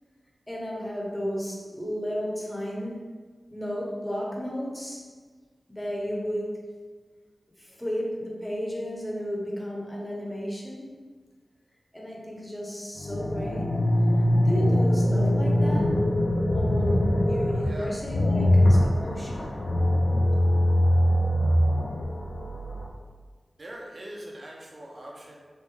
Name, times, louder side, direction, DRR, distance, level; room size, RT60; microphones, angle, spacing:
voice 1, 0.5-3.1 3.5-5.1 5.7-6.6 7.6-10.9 11.9-13.8 14.2-16.0 16.5-19.5, equal, 10° left, -3 dB, 0.9 m, -33 dB
sound 1, 13.0-22.9, left 1 dB, 70° left, 0.5 m, -23 dB
voice 2, 17.6-17.9 23.6-25.4, right 1 dB, 55° right, -2 dB, 0.8 m, -42 dB
3.3 x 2.5 x 3.4 m, 1.5 s
wide cardioid pair, 60°, 0 cm